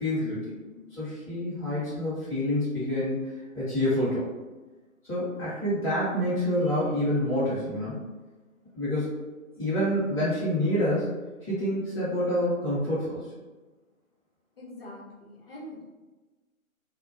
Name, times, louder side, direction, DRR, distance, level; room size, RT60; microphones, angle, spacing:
voice 1, 0.0-4.2 5.0-8.0 8.7-9.2 9.6-11.1 11.4-13.2, left 1 dB, 5° left, -15 dB, 0.9 m, -27 dB
voice 2, 14.6-15.8, left 1 dB, 45° left, -5 dB, 0.7 m, -43 dB
2.2 x 2.1 x 3.0 m, 1.2 s
figure-of-eight pair, 140°, 42 cm